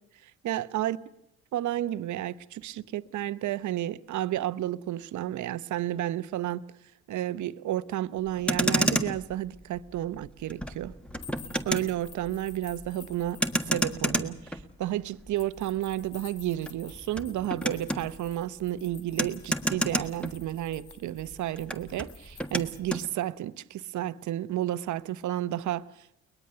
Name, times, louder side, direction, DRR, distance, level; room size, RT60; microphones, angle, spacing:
voice 1, 0.2-1.0 1.5-6.6 7.1-10.9 11.6-13.4 13.7-26.1, right 13 dB, 75° right, 0.9 m, -32 dB
Motor vehicle (road), 8.3-20.9 21.2-23.1, equal, 5° left, 1.5 m, -32 dB
sound 1, 11.2-13.9 15.4-23.0, left 8 dB, 80° left, 2.3 m, -52 dB
22.5 x 20.0 x 6.7 m
cardioid pair, 90°, 30 cm